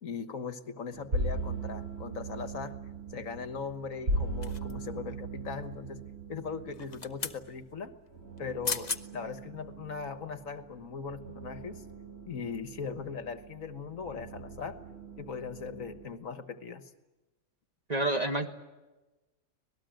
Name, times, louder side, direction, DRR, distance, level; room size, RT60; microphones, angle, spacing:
voice 1, 0.0-2.8 3.1-6.0 6.3-7.9 8.4-11.8 12.3-14.8 15.2-16.9, left 5 dB, 60° left, 10 dB, 1.6 m, -39 dB
sound 1, 0.9-16.1, right 2 dB, 45° right, 3.2 m, -39 dB
sound 2, 4.4-5.0 6.7-7.4 8.4-8.5 8.6-9.0 9.6-9.7, left 5 dB, 35° left, 0.9 m, -36 dB
voice 2, 17.9-18.5, right 2 dB, 25° right, 5 dB, 1.7 m, -28 dB
26.0 x 19.0 x 9.1 m, 1.1 s
omnidirectional pair, 1.6 m